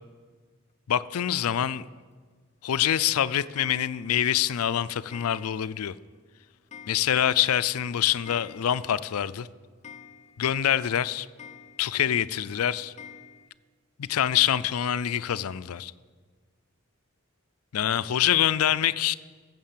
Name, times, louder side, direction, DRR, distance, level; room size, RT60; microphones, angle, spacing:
voice 1, 0.9-1.9 2.6-5.9 6.9-9.5 10.4-11.3 11.8-12.9 14.0-15.9 17.7-19.1, left 10 dB, 85° left, 0.4 m, -25 dB
Clock, 3.6-4.3 5.1-5.9 6.2-6.3 6.7-7.5 7.7-7.8 8.1-9.0 9.3-9.4 9.8-10.6 11.4-12.1 13.0-13.5, left 7 dB, 30° left, 0.5 m, -48 dB
14.0 x 7.4 x 7.5 m
head